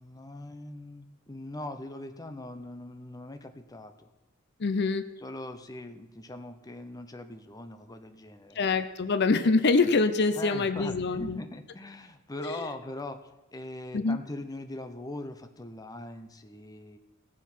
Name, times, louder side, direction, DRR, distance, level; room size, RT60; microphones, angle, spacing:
voice 1, 0.0-4.1 5.2-8.6 10.4-17.0, left 1 dB, 20° left, 8 dB, 0.7 m, -41 dB
voice 2, 4.6-5.0 8.6-11.4 12.4-12.6 13.9-14.2, left 3 dB, 55° left, 11 dB, 0.6 m, -25 dB
16.5 x 7.4 x 5.5 m, 1.1 s
head